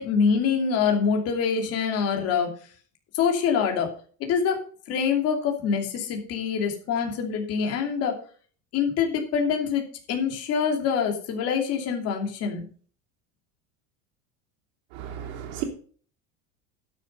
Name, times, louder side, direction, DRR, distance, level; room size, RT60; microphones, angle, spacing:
voice 1, 0.0-2.5 3.1-3.9 4.2-4.6 4.9-8.2 8.7-12.6, left 6 dB, 45° left, 3 dB, 2.8 m, -25 dB
voice 2, 14.9-15.6, right 11 dB, 75° right, 1 dB, 3.0 m, -34 dB
12.0 x 6.8 x 5.4 m, 0.44 s
cardioid pair, 150°, 34 cm